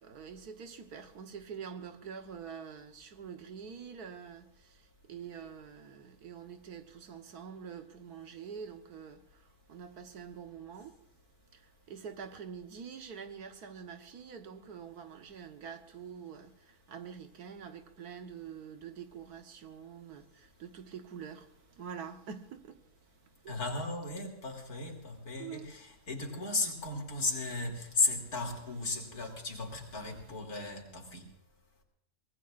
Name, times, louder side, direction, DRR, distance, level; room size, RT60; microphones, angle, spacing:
voice 1, 0.0-11.0 11.5-22.8 23.4-23.6 25.4-25.7, right 7 dB, 75° right, 1.7 m, -46 dB
voice 2, 23.5-31.3, left 3 dB, 70° left, 3.5 m, -35 dB
24.0 x 19.0 x 2.5 m
omnidirectional pair, 1.7 m